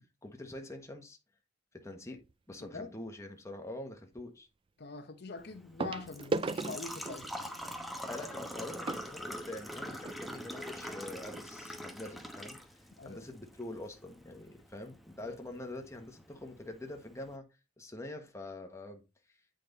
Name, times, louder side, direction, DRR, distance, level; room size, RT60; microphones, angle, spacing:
voice 1, 0.2-1.2 1.7-2.2 2.5-4.5 8.0-17.4 17.8-19.4, left 1 dB, 15° left, 1.3 m, -45 dB
sound 1, 2.2-2.5 4.2-4.3 5.8-10.2 11.0-11.1 11.3-11.5 12.0-12.1, right 3 dB, 25° right, 0.3 m, -39 dB
voice 2, 4.8-7.3 13.0-13.2 15.2-15.4, left 3 dB, 60° left, 0.9 m, -44 dB
Engine / Trickle dribble / Fill (with liquid), 5.4-17.4, equal, ahead, 1.0 m, -45 dB
8.6 x 5.1 x 4.0 m
head